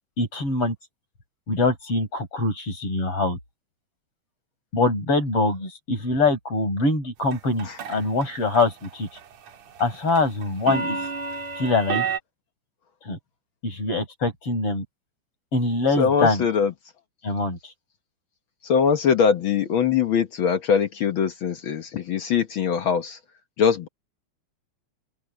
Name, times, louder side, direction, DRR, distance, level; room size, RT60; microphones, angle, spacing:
voice 1, 0.2-0.7 1.5-3.4 4.7-9.1 9.8-11.0 11.6-12.0 13.0-13.2 13.6-14.8 15.5-16.5 17.2-17.7, left 3 dB, 45° left, 7.6 m, -24 dB
sound 1, 7.3-8.3 8.6-8.9 9.2-12.2, right 5 dB, 60° right, 2.9 m, -29 dB
voice 2, 16.0-16.7 18.6-23.2 23.6-23.9, left 7 dB, 65° left, 1.3 m, -22 dB
open air
omnidirectional pair, 3.6 m